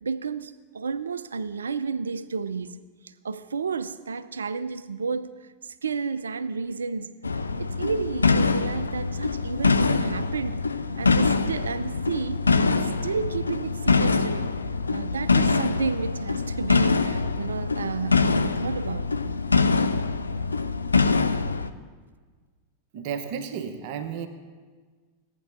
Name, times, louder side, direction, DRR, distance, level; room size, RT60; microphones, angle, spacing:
voice 1, 0.0-7.2 7.6-10.6 11.0-14.5 14.9-19.3, right 5 dB, 70° right, 0.4 m, -31 dB
sound 1, 7.2-21.7, left 4 dB, 80° left, 0.4 m, -24 dB
voice 2, 22.9-24.3, right 7 dB, 45° right, 0.8 m, -32 dB
17.0 x 9.0 x 2.6 m
figure-of-eight pair, 90°, 0 cm